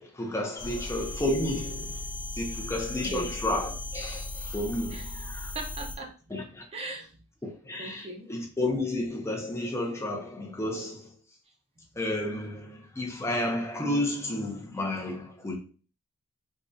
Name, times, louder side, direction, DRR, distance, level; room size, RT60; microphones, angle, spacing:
voice 1, 0.0-2.1 2.4-5.0 5.2-5.5 6.3-6.6 7.4-11.1 12.0-15.6, left 1 dB, 10° left, 0.6 m, -31 dB
sound 1, 0.6-6.0, left 2 dB, 55° left, 0.5 m, -37 dB
voice 2, 3.0-3.3 4.9-5.1 5.4-6.1 6.7-7.2 7.8-8.3, right 2 dB, 25° right, 0.7 m, -39 dB
3.7 x 3.0 x 2.6 m
head